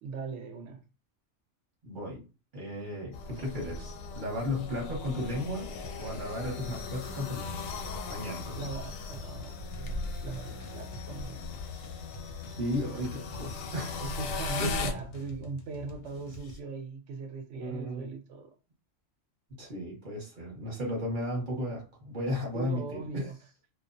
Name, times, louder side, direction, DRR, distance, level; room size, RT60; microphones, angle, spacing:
voice 1, 0.0-0.8 8.6-11.4 14.0-18.5 22.5-23.4, right 4 dB, 70° right, 0.9 m, -40 dB
voice 2, 1.8-2.2 2.5-5.7 6.0-7.7 8.1-8.7 12.5-14.0 14.6-14.9 17.5-18.1 19.6-23.3, left 1 dB, 45° right, 1.0 m, -35 dB
sound 1, 3.1-14.9, left 4 dB, 90° left, 1.0 m, -38 dB
sound 2, 5.5-16.6, left 2 dB, 65° left, 0.7 m, -48 dB
2.4 x 2.1 x 2.5 m
omnidirectional pair, 1.3 m